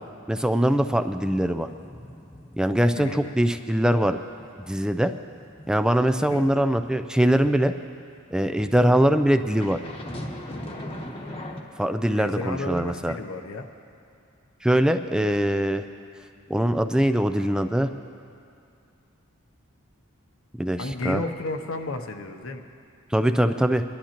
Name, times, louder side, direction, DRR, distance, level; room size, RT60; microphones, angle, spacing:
voice 1, 0.3-1.7 2.6-4.2 4.6-5.1 5.7-7.7 8.3-9.8 11.8-13.2 14.6-15.8 16.5-17.9 20.6-21.2 23.1-23.8, equal, 5° right, 8 dB, 0.3 m, -22 dB
sound 1, 1.1-3.0 3.3-3.6 4.0-7.6 8.5-11.6, left 1 dB, 25° left, 1.0 m, -40 dB
voice 2, 3.0-3.3 6.3-6.5 12.1-13.7 20.8-22.6, left 2 dB, 70° left, 6 dB, 0.7 m, -32 dB
23.5 x 11.5 x 2.9 m, 2.5 s
head